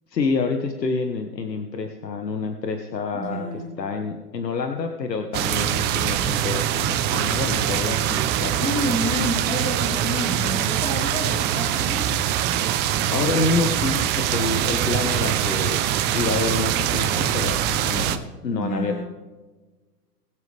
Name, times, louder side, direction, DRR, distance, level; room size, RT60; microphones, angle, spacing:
voice 1, 0.1-3.5 3.8-8.6 13.1-15.9 16.1-19.0, left 4 dB, 85° left, 6 dB, 1.4 m, -27 dB
voice 2, 3.1-3.8 8.6-12.1 18.5-19.0, equal, 15° left, -2 dB, 3.8 m, -29 dB
sound 1, 5.3-18.2, right 11 dB, 20° right, 0.6 m, -23 dB
21.0 x 7.3 x 3.4 m, 1.3 s
hypercardioid pair, 120°, 49 cm